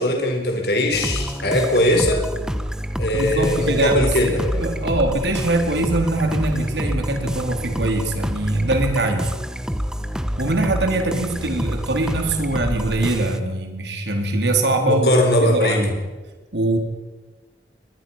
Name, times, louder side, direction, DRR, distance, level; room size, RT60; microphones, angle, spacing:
voice 1, 0.0-2.2 3.0-4.7 14.8-15.8, left 1 dB, 65° left, 2 dB, 4.2 m, -20 dB
sound 1, 0.9-13.4, equal, 5° right, 1.0 m, -27 dB
voice 2, 3.1-9.3 10.4-15.1 15.4-16.0 16.5-16.8, right 2 dB, 80° right, 4 dB, 3.7 m, -22 dB
24.0 x 21.0 x 5.7 m, 1.2 s
head